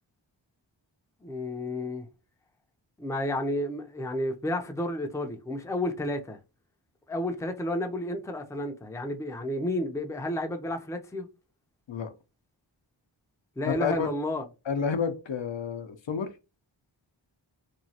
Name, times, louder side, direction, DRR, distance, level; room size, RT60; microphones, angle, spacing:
voice 1, 1.2-2.1 3.0-6.4 7.1-11.3 13.6-14.4, left 1 dB, 5° left, 0.5 m, -31 dB
voice 2, 13.7-14.1 14.7-16.3, left 6 dB, 70° left, 0.6 m, -30 dB
3.0 x 2.2 x 2.7 m
wide cardioid pair, 70°, 47 cm